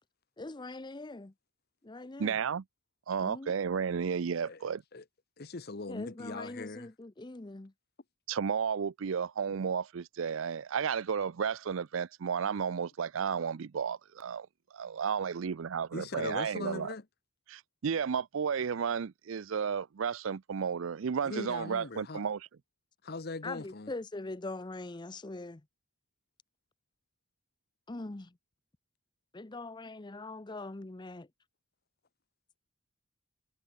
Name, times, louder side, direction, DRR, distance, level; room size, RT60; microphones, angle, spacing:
voice 1, 0.4-1.3 1.8-2.4 3.2-3.5 5.9-7.7 23.4-25.6 27.9-28.3 29.3-31.3, left 2 dB, 20° left, 0.6 m, -42 dB
voice 2, 2.2-2.6 3.1-4.8 8.3-14.5 14.7-16.9 17.5-22.5, right 6 dB, 70° right, 0.5 m, -33 dB
voice 3, 5.4-6.9 15.9-17.0 21.2-22.2 23.0-23.9, left 3 dB, 50° left, 1.0 m, -40 dB
head